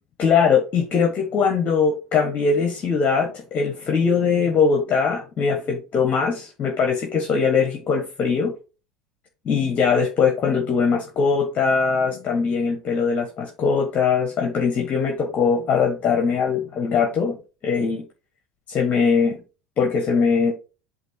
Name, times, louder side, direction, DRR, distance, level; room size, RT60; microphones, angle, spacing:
voice 1, 0.2-8.5 9.4-17.4 17.6-18.0 18.7-19.4 19.8-20.5, left 5 dB, 40° left, 1.2 m, -21 dB
8.0 x 2.8 x 4.6 m
hypercardioid pair, 80°, 4 cm